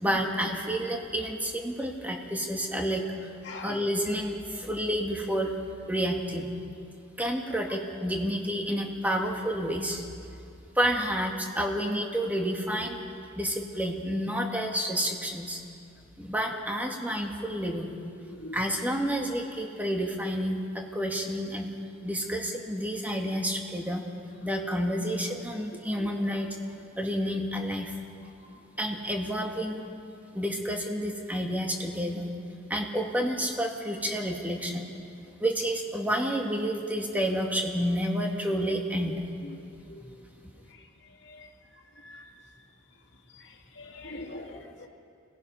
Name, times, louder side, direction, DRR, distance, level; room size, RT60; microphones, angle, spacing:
voice 1, 0.0-3.3 3.6-5.5 5.9-6.5 7.2-10.1 10.8-13.0 13.4-15.6 16.2-18.0 18.5-21.7 22.0-24.0 24.4-26.6 27.0-27.9 28.8-29.9 30.3-32.3 32.7-34.9 35.4-39.2, equal, 10° right, 1 dB, 1.8 m, -29 dB
voice 2, 3.5-3.8 18.3-18.6 39.9-40.0 41.3-41.5 42.0-42.3 43.8-44.9, left 2 dB, 70° left, 1 dB, 1.9 m, -42 dB
25.5 x 18.0 x 5.6 m, 2.4 s
head